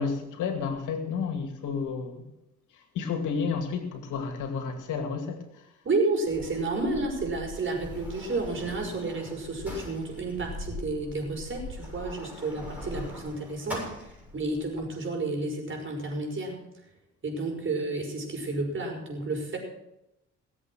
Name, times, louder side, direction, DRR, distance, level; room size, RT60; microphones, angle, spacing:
voice 1, 0.0-2.2 2.9-5.4, left 5 dB, 85° left, 2.4 m, -31 dB
voice 2, 5.8-13.9 14.3-16.6 17.2-19.6, right 3 dB, 40° right, 5.6 m, -31 dB
Sliding door, 6.2-14.8, left 1 dB, 5° right, 7.4 m, -41 dB
19.5 x 8.0 x 6.2 m
cardioid pair, 90°, 30 cm